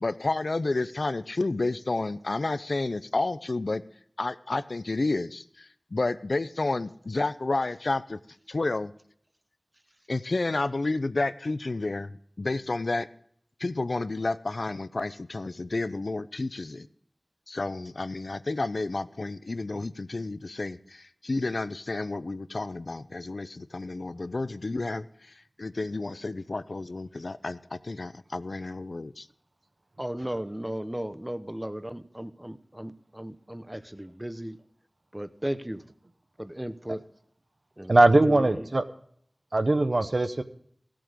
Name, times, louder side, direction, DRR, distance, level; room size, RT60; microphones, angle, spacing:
voice 1, 0.0-3.8 4.2-8.2 8.5-8.9 10.1-12.1 12.4-13.1 13.6-16.9 17.5-25.3 25.6-29.3, left 2 dB, 80° left, 13 dB, 0.5 m, -30 dB
voice 2, 30.0-34.6 35.1-35.9 36.4-37.0 37.8-38.0 38.2-38.7, right 1 dB, 15° right, 12 dB, 0.8 m, -35 dB
voice 3, 37.9-38.8 39.5-40.4, right 2 dB, 60° right, 9 dB, 1.0 m, -20 dB
16.0 x 7.7 x 5.0 m, 0.66 s
wide cardioid pair, 55°, 0 cm